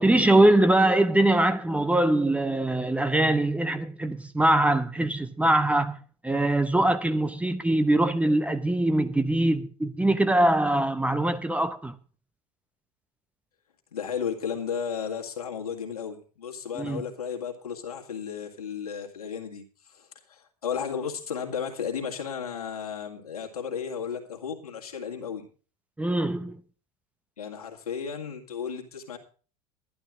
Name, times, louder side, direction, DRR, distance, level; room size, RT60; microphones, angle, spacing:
voice 1, 0.0-11.9 16.8-17.0 26.0-26.6, right 1 dB, 5° right, 0.7 m, -23 dB
voice 2, 13.9-25.5 27.4-29.2, left 7 dB, 75° left, 2.1 m, -34 dB
11.5 x 11.5 x 4.9 m
figure-of-eight pair, 70°, 19 cm